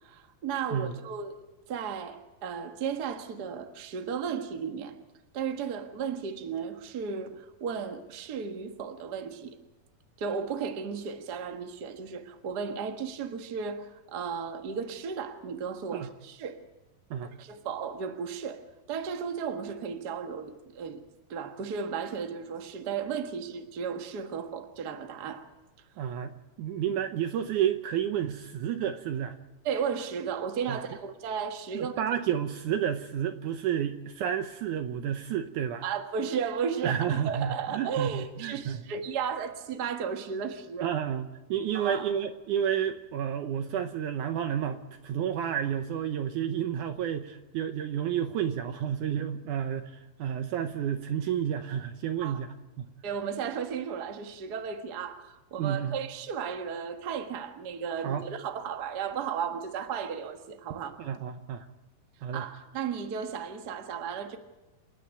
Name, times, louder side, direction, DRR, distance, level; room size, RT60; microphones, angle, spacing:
voice 1, 0.0-1.4 1.7-5.0 5.3-9.6 10.2-16.6 17.4-21.0 21.3-25.5 29.6-32.0 35.8-40.9 41.7-42.1 52.2-52.4 53.0-61.0 62.3-64.4, right 6 dB, 45° right, 1.4 m, -34 dB
voice 2, 26.0-26.3 26.6-29.3 30.7-30.8 31.7-35.8 36.8-38.8 40.8-52.9 55.6-56.0 58.0-58.3 61.0-61.7 62.2-62.4, right 9 dB, 75° right, 2.1 m, -31 dB
28.5 x 10.0 x 9.2 m
omnidirectional pair, 4.1 m